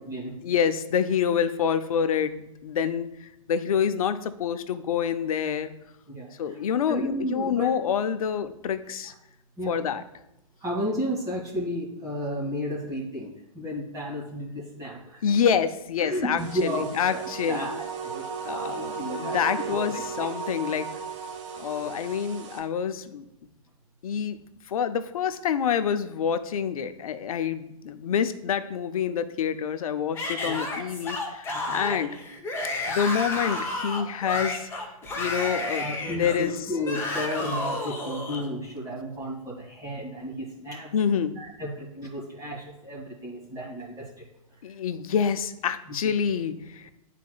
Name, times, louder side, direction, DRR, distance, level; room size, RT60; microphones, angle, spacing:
voice 1, 0.4-5.7 6.4-9.1 9.7-10.0 15.2-17.7 18.4-20.9 21.6-23.2 24.0-24.4 24.7-32.2 32.9-34.7 35.2-36.6 37.7-37.9 40.9-41.3 44.6-46.9, left 7 dB, 70° left, 11 dB, 0.6 m, -27 dB
voice 2, 6.1-6.6 6.9-7.7 9.6-9.7 10.6-15.2 16.0-18.2 18.5-19.4 19.7-20.0 21.8-21.9 30.4-30.6 31.5-31.9 35.8-44.1 46.0-46.1, equal, 20° right, -5 dB, 1.8 m, -33 dB
sound 1, 16.4-22.6, right 6 dB, 55° right, 1.1 m, -35 dB
Yell / Screaming, 30.1-38.4, left 2 dB, 15° left, 1.0 m, -31 dB
10.5 x 4.1 x 2.3 m, 0.88 s
hypercardioid pair, 125°, 19 cm